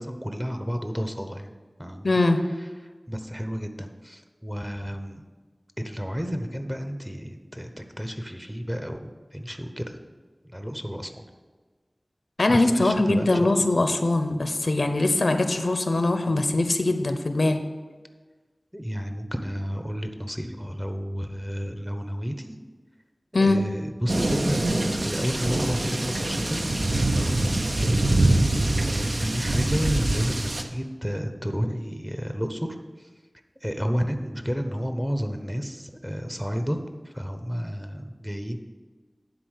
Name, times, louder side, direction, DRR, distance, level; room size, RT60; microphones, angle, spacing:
voice 1, 0.0-1.5 1.8-2.2 2.6-2.7 3.1-5.2 5.8-9.0 9.3-10.0 10.4-11.3 12.5-13.5 18.7-22.5 23.4-28.4 28.8-32.7 33.0-33.1 33.6-38.6, equal, 10° right, 6 dB, 0.8 m, -31 dB
voice 2, 2.0-2.4 12.4-17.6 23.3-23.6, left 2 dB, 80° left, 7 dB, 0.6 m, -22 dB
sound 1, 24.1-30.6, right 2 dB, 65° right, 0.7 m, -24 dB
9.8 x 4.0 x 6.5 m, 1.4 s
wide cardioid pair, 45°, 0 cm